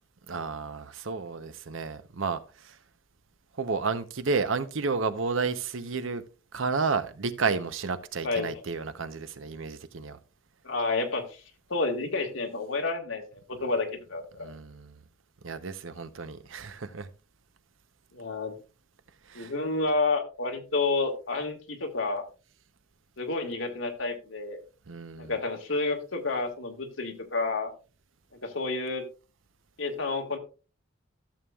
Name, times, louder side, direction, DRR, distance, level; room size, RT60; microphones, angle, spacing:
voice 1, 0.3-2.8 3.6-6.2 6.5-10.2 14.4-14.9 15.4-17.1 19.3-19.5 24.9-25.3, right 4 dB, 85° right, 0.8 m, -31 dB
voice 2, 8.2-8.6 10.6-11.4 11.7-14.5 18.1-18.5 19.3-22.3 23.2-24.6 25.2-27.7 28.4-29.0 29.8-30.4, left 3 dB, 90° left, 1.8 m, -30 dB
14.5 x 7.0 x 2.4 m
head